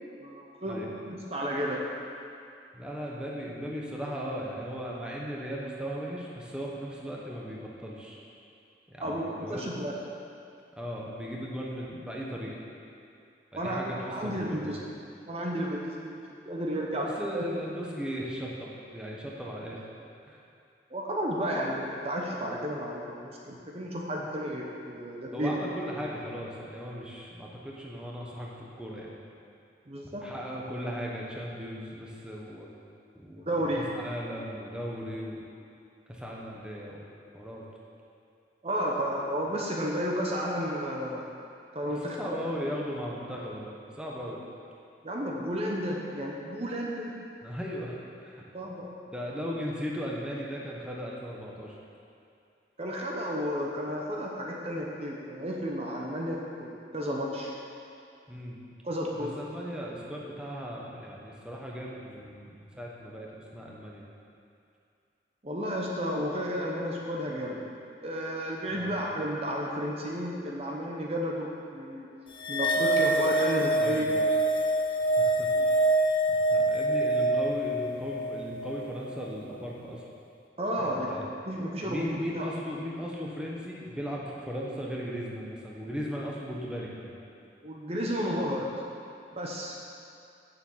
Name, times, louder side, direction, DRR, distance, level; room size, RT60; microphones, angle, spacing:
voice 1, 0.2-1.8 9.0-9.9 13.5-14.8 15.3-16.2 16.4-17.4 20.9-25.5 29.9-30.2 33.5-33.9 38.6-41.2 41.7-42.4 42.6-42.7 45.0-47.1 48.5-49.0 52.8-57.6 58.8-59.4 65.4-67.6 68.0-72.1 72.5-74.1 75.5-75.6 80.6-81.2 81.5-82.5 87.6-88.7 89.3-89.8, equal, 35° right, -2 dB, 0.9 m, -32 dB
voice 2, 2.7-8.2 8.9-9.7 10.8-12.6 13.5-14.7 17.0-19.8 20.3-20.4 25.3-29.1 30.0-32.7 33.1-33.4 33.7-35.4 36.1-37.0 37.3-37.6 41.9-44.4 47.4-48.4 49.1-51.7 58.3-58.6 59.2-64.0 68.7-69.0 73.8-74.3 75.2-75.5 76.3-80.0 80.8-81.3 81.8-87.1, equal, 5° right, -4 dB, 1.0 m, -37 dB
sound 1, 72.4-79.0, right 1 dB, 30° left, 0.7 m, -26 dB
6.9 x 6.8 x 7.3 m, 2.5 s
head